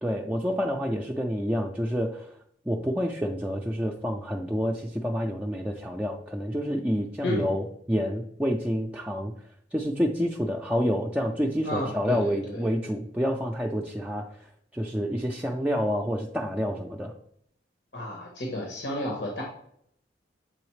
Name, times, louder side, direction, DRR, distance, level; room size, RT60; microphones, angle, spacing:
voice 1, 0.0-2.4 2.7-9.3 9.7-17.1, equal, 5° right, 0 dB, 0.4 m, -28 dB
voice 2, 11.6-12.7 17.9-19.4, left 1 dB, 80° left, -1 dB, 1.2 m, -32 dB
7.7 x 3.9 x 3.2 m, 0.68 s
head